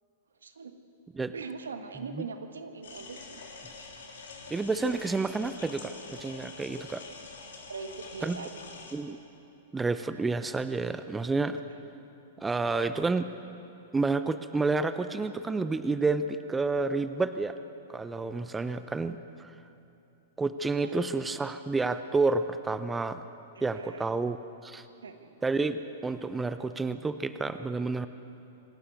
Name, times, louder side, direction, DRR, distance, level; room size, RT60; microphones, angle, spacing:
voice 1, 0.4-0.7 1.3-3.4 4.8-5.0 7.7-8.6 11.7-11.8 20.8-20.9 23.5-24.0 25.0-25.4, right 4 dB, 80° right, 7 dB, 1.6 m, -41 dB
sound 1, 2.8-8.9, left 4 dB, 70° left, 3.5 m, -46 dB
voice 2, 4.5-7.0 8.2-8.4 8.9-9.2 9.7-11.6 12.4-13.3 13.9-17.5 17.9-19.6 20.4-23.2 23.6-24.4 24.6-24.8 25.4-28.1, right 3 dB, 10° right, 11 dB, 0.7 m, -30 dB
26.5 x 12.5 x 8.1 m, 2.9 s
figure-of-eight pair, 105°, 0 cm